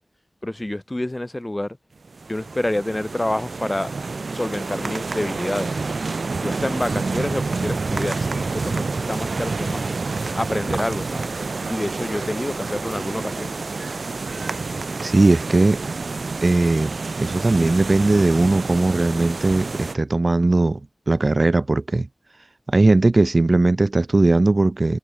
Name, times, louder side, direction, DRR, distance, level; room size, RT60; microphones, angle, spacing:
voice 1, 0.4-1.8 2.3-3.9 4.3-5.7 6.4-9.8 10.4-11.3 11.7-13.5, left 1 dB, 20° left, 5.4 m, -27 dB
sound 1, 2.0-19.9, right 3 dB, 70° right, 1.6 m, -28 dB
voice 2, 15.0-15.8 16.4-20.8 21.1-22.1 22.7-25.0, right 2 dB, 45° right, 0.6 m, -18 dB
wide cardioid pair, 75°, 0 cm